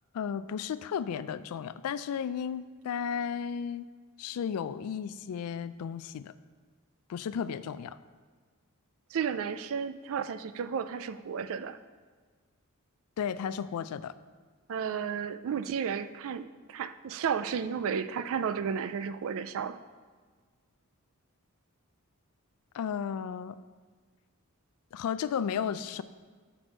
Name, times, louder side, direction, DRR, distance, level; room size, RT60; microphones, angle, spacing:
voice 1, 0.1-3.9 4.2-6.3 7.1-8.0 13.2-14.1 22.7-23.6 24.9-26.0, left 7 dB, 80° left, 14 dB, 0.3 m, -34 dB
voice 2, 9.1-11.8 14.7-19.8, right 7 dB, 65° right, 13 dB, 0.3 m, -33 dB
6.1 x 5.9 x 5.0 m, 1.5 s
head